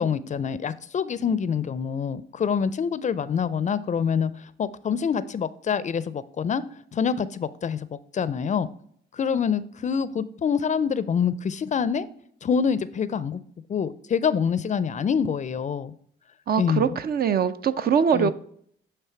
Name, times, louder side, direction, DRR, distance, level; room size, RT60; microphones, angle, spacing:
voice 1, 0.0-6.6 6.9-8.7 9.1-12.1 12.4-13.4 13.7-15.9 16.6-17.0 18.1-18.3, left 7 dB, 40° left, 16 dB, 0.4 m, -26 dB
voice 2, 16.5-18.3, right 7 dB, 50° right, 12 dB, 0.5 m, -22 dB
9.2 x 3.3 x 4.5 m, 0.63 s
cardioid pair, 90°, 20 cm